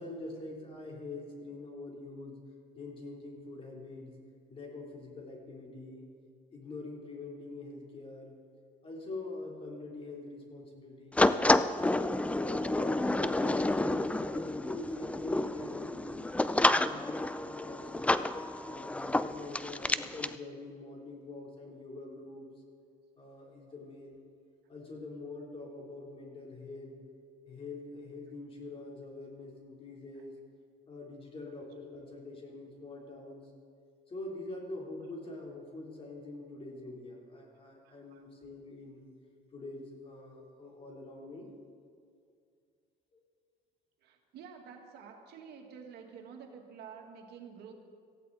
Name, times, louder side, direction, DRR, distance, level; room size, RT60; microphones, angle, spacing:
voice 1, 0.0-2.4 2.8-4.2 4.5-6.1 6.5-8.3 8.8-11.2 11.8-16.2 16.6-18.1 18.7-22.5 23.2-24.2 24.7-27.0 27.5-30.4 30.9-33.4 34.1-39.1 39.5-41.5 43.1-43.2, left 2 dB, 35° left, -1 dB, 3.7 m, -44 dB
sound 1, 11.2-20.3, left 2 dB, 10° left, 0.4 m, -29 dB
voice 2, 37.8-38.2 44.0-47.7, right 6 dB, 75° right, 2 dB, 2.1 m, -49 dB
18.5 x 15.0 x 4.2 m, 2.3 s
cardioid pair, 110°, 17 cm